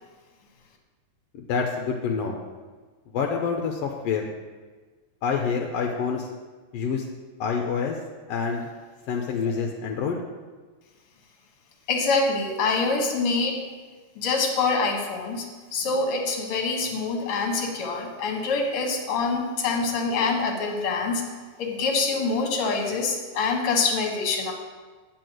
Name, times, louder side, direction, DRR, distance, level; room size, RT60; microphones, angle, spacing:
voice 1, 1.3-2.4 3.1-4.3 5.2-6.3 6.7-7.0 7.4-8.0 8.3-8.6 9.1-10.2, left 5 dB, 75° left, 1 dB, 1.5 m, -27 dB
voice 2, 11.9-13.6 14.2-21.3 21.6-24.5, left 4 dB, 55° left, 2 dB, 2.0 m, -25 dB
9.6 x 4.5 x 7.7 m, 1.4 s
omnidirectional pair, 3.5 m